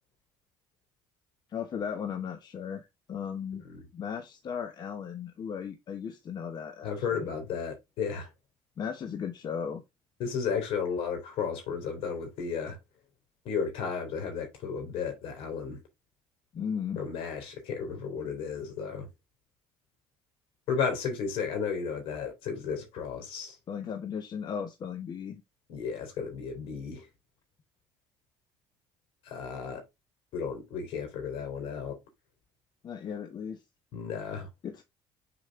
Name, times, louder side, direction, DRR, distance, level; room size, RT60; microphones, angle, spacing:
voice 1, 1.5-3.6 3.9-7.3 8.8-9.8 16.5-17.0 23.7-25.4 32.8-33.6 34.6-34.8, left 7 dB, 45° left, 1.0 m, -36 dB
voice 2, 6.8-8.3 10.2-12.8 13.5-15.8 17.0-19.1 20.7-23.6 25.7-27.1 29.2-29.8 30.3-32.0 33.9-34.5, left 6 dB, 70° left, 3.7 m, -33 dB
6.6 x 5.1 x 3.6 m
supercardioid pair, 95°, 10 cm